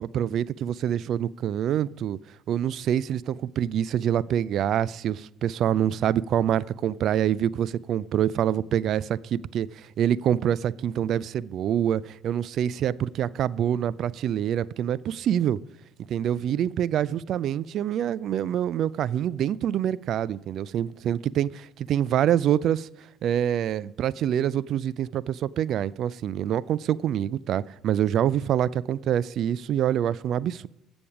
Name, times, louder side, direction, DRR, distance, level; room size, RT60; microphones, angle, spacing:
voice 1, 0.0-2.2 2.5-15.6 16.1-22.9 23.2-30.7, right 10 dB, 55° right, 0.3 m, -26 dB
15.0 x 7.1 x 4.9 m
figure-of-eight pair, 50°, 0 cm